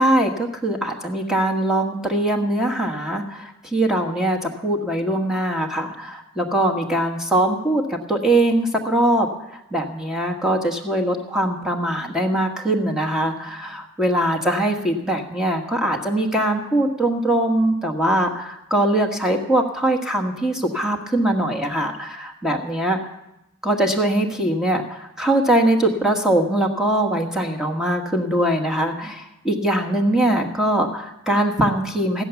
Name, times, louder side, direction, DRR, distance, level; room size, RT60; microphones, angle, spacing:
voice 1, 0.0-9.3 9.7-23.0 23.6-32.2, right 1 dB, 5° right, 1 dB, 1.4 m, -22 dB
14.5 x 10.5 x 7.1 m, 0.88 s
head